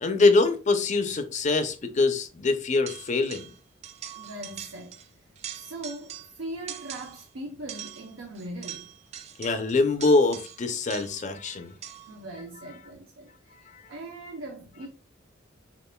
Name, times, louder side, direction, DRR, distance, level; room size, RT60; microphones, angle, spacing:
voice 1, 0.0-3.5 9.4-11.7 13.7-13.8, left 3 dB, 40° left, 0.5 m, -24 dB
sound 1, 2.9-3.6 3.8-5.1 5.3-6.4 6.7-7.3 7.7-11.3 11.8-12.2, right 9 dB, 35° right, 0.3 m, -42 dB
voice 2, 4.2-4.9 5.5-8.9 12.1-13.3 13.9-14.9, right 1 dB, 85° right, 0.8 m, -40 dB
6.7 x 2.5 x 2.2 m
head